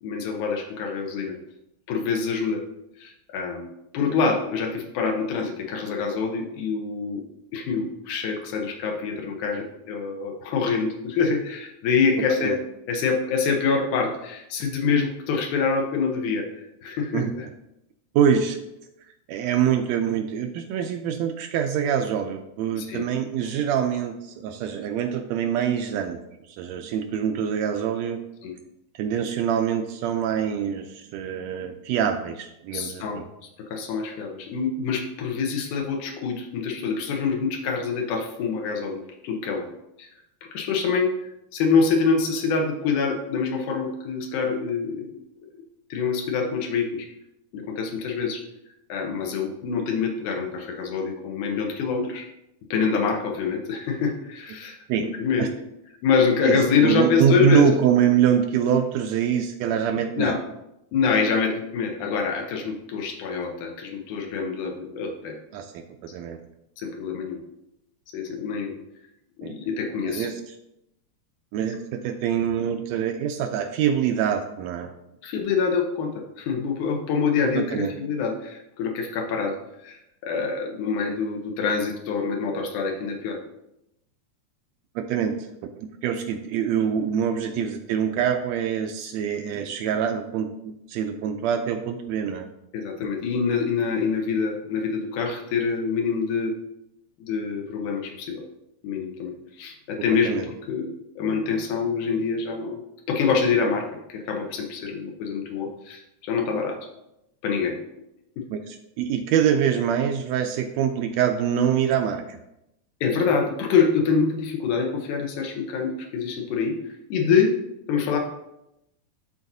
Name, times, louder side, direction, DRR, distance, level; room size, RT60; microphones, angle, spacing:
voice 1, 0.0-1.3 1.9-2.6 3.0-3.7 3.9-7.2 7.5-12.6 12.9-17.5 22.8-23.1 28.4-28.5 32.7-33.2 33.7-39.7 40.0-40.1 40.5-45.2 45.9-47.1 47.5-48.4 48.9-52.3 52.7-55.5 56.0-57.7 60.2-60.4 60.9-65.4 66.8-67.4 68.1-68.8 69.4-70.3 75.2-79.6 79.8-83.4 92.7-96.5 97.2-98.4 98.8-100.4 100.7-106.8 107.4-107.8 108.4-108.5 113.0-116.8 117.1-117.5 117.9-118.2, left 5 dB, 85° left, 2 dB, 2.4 m, -25 dB
voice 2, 18.1-18.6 19.3-26.2 26.5-28.2 28.9-33.3 54.5-54.6 54.9-55.1 55.4-55.5 56.4-60.3 65.5-66.4 69.4-69.5 70.0-70.4 71.5-74.9 77.4-77.9 84.9-85.4 85.8-92.5 100.2-100.5 108.5-112.4, right 8 dB, 80° right, 6 dB, 1.6 m, -25 dB
12.0 x 4.0 x 2.7 m, 0.85 s
omnidirectional pair, 3.4 m